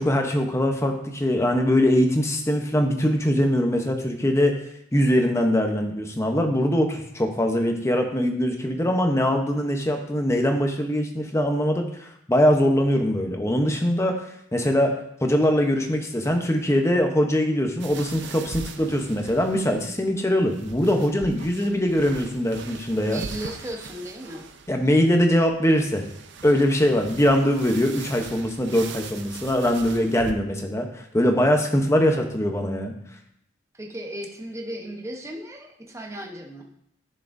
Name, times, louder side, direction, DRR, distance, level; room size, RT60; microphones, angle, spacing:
voice 1, 0.0-4.6 4.9-23.2 24.7-26.0 26.4-32.9, equal, 15° left, 3 dB, 0.8 m, -22 dB
sound 1, 17.8-30.3, right 4 dB, 60° right, 0.6 m, -41 dB
voice 2, 23.0-24.5 33.7-36.6, right 1 dB, 15° right, 1 dB, 0.9 m, -35 dB
10.5 x 6.1 x 2.6 m, 0.72 s
head